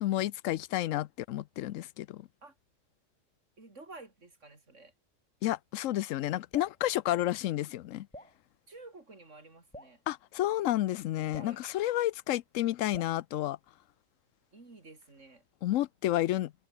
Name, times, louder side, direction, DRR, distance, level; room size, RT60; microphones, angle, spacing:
voice 1, 0.0-2.2 5.4-8.1 10.1-13.6 15.6-16.5, left 14 dB, 85° left, 1.0 m, -31 dB
voice 2, 3.6-4.9 8.7-10.0 11.3-11.6 14.5-15.4, right 3 dB, 70° right, 4.0 m, -51 dB
Drip, 6.5-6.8 8.1-8.4 9.7-10.0 11.3-11.6 12.9-13.2, equal, 5° left, 4.8 m, -48 dB
omnidirectional pair, 1.3 m